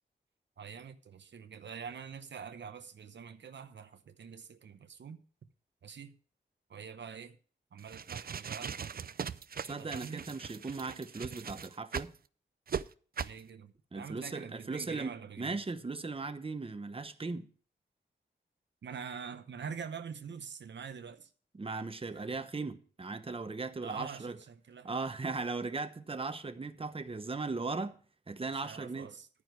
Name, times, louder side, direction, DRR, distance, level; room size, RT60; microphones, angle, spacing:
voice 1, 0.6-5.2 5.8-6.1 6.7-7.4 7.7-9.1 9.8-10.2 13.2-15.6 18.8-21.3 22.3-22.4 23.8-25.0 28.5-29.3, right 6 dB, 75° right, 0.8 m, -45 dB
sound 1, 7.8-12.2 12.7-12.8 13.2-13.4, right 7 dB, 55° right, 0.5 m, -39 dB
voice 2, 9.6-12.1 13.9-17.5 21.5-24.4 24.8-28.0 28.3-29.1, right 3 dB, 30° right, 0.9 m, -38 dB
11.0 x 9.6 x 4.7 m
wide cardioid pair, 80°, 19 cm